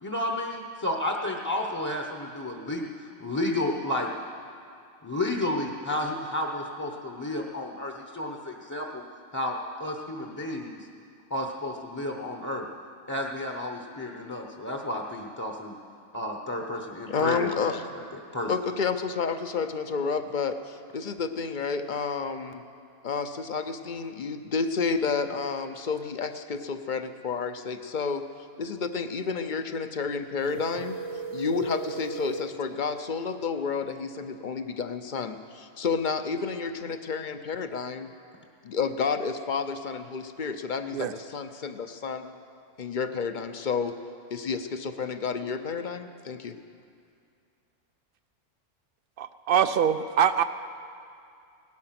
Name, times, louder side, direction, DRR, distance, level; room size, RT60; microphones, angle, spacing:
voice 1, 0.0-4.1 5.0-9.0 9.3-10.8 11.3-12.7 13.1-15.7 16.1-18.5, left 1 dB, 15° left, 1 dB, 0.8 m, -32 dB
voice 2, 17.1-17.8 18.5-22.6 23.0-28.2 28.6-31.0 31.3-38.1 38.6-42.3 42.8-43.9 44.3-46.5, left 5 dB, 45° left, 9 dB, 0.7 m, -30 dB
sound 1, 30.4-32.5, right 5 dB, 20° right, 0.9 m, -36 dB
voice 3, 49.2-50.4, right 8 dB, 60° right, 11 dB, 0.6 m, -23 dB
18.0 x 12.0 x 5.8 m, 2.4 s
omnidirectional pair, 1.3 m